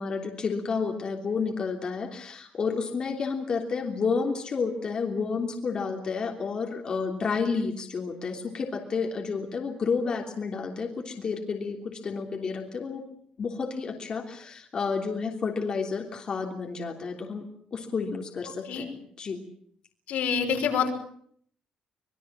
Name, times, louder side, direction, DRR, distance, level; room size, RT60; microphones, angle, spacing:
voice 1, 0.0-13.0 13.4-17.5 17.7-19.4, left 5 dB, 35° left, 2 dB, 3.2 m, -30 dB
voice 2, 20.1-21.0, left 6 dB, 80° left, 3 dB, 5.7 m, -26 dB
25.5 x 21.5 x 7.5 m, 0.63 s
cardioid pair, 155°, 2 cm